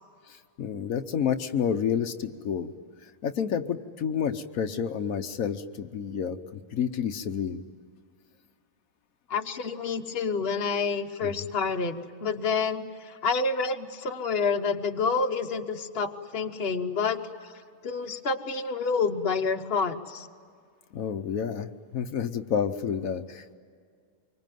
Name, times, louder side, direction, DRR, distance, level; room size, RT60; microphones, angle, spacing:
voice 1, 0.6-2.7 3.2-7.6 11.2-11.3 20.9-23.6, left 7 dB, 80° left, 7 dB, 1.4 m, -29 dB
voice 2, 9.3-17.2 17.8-20.3, left 4 dB, 45° left, 5 dB, 1.4 m, -28 dB
25.5 x 24.0 x 9.2 m, 2.1 s
omnidirectional pair, 1.4 m